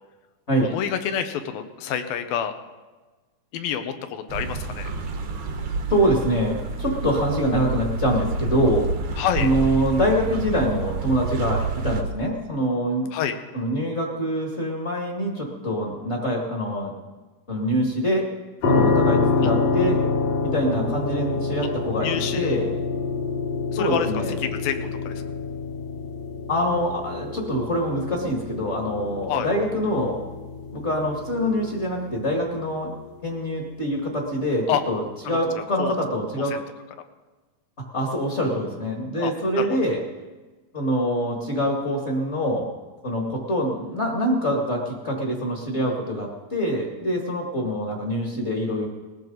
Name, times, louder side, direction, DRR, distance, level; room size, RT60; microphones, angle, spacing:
voice 1, 0.6-2.5 3.5-4.9 9.2-9.5 13.1-13.4 19.4-19.5 22.0-22.6 23.7-24.1 24.4-25.4 29.3-29.5 34.7-34.8 35.3-35.9 36.5-36.6 39.1-39.3 39.6-39.8, left 9 dB, 80° left, 8 dB, 2.8 m, -28 dB
sound 1, 4.3-12.0, right 3 dB, 60° right, 1.5 m, -28 dB
voice 2, 5.9-8.9 9.4-13.1 13.5-16.9 17.5-18.3 18.7-20.0 20.4-22.1 22.3-22.7 23.8-24.3 26.5-30.2 30.7-32.9 33.2-36.6 37.9-40.0 40.7-42.7 43.0-48.9, equal, 30° left, 0 dB, 1.5 m, -25 dB
sound 2, 18.6-33.5, left 4 dB, 50° left, 2.2 m, -27 dB
20.0 x 14.5 x 4.0 m, 1.3 s
omnidirectional pair, 4.2 m